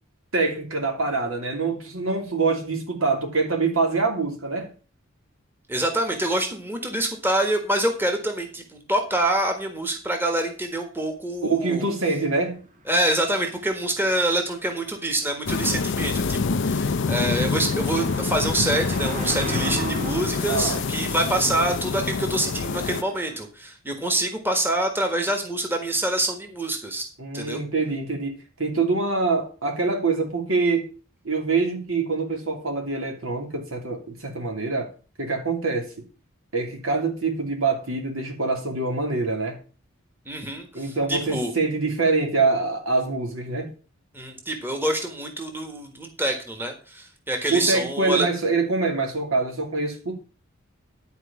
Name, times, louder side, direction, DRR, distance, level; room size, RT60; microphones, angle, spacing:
voice 1, 0.3-4.7 11.4-12.6 20.5-20.8 27.2-30.9 31.2-34.9 35.2-35.9 36.5-39.6 40.7-43.7 47.5-50.1, right 3 dB, 70° right, 2.8 m, -25 dB
voice 2, 5.7-11.8 12.9-27.0 27.3-27.6 40.2-41.5 44.1-48.3, right 1 dB, 10° right, 1.6 m, -26 dB
Car passing by, 12.3-23.5, right 1 dB, 40° right, 1.6 m, -38 dB
sound 1, 15.5-23.0, left 4 dB, 60° left, 0.5 m, -26 dB
11.0 x 4.8 x 7.1 m
head